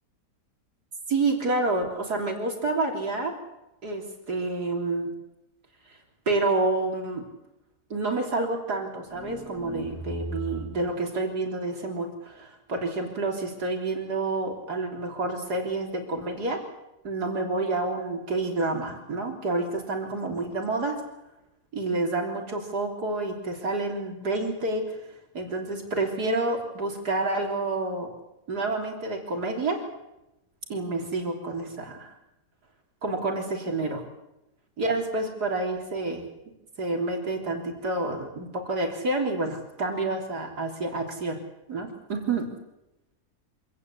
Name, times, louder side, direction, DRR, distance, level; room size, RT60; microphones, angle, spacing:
voice 1, 1.1-3.3 3.8-5.1 6.3-7.2 7.9-16.6 17.0-21.0 21.7-25.0 25.3-28.1 28.5-29.9 30.7-32.1 33.0-34.0 34.8-36.3 36.8-41.4 41.7-42.5, right 2 dB, 85° right, 2 dB, 4.1 m, -29 dB
sound 1, 9.0-10.9, right 1 dB, 25° left, 6.9 m, -37 dB
26.0 x 18.0 x 8.4 m, 0.92 s
omnidirectional pair, 1.7 m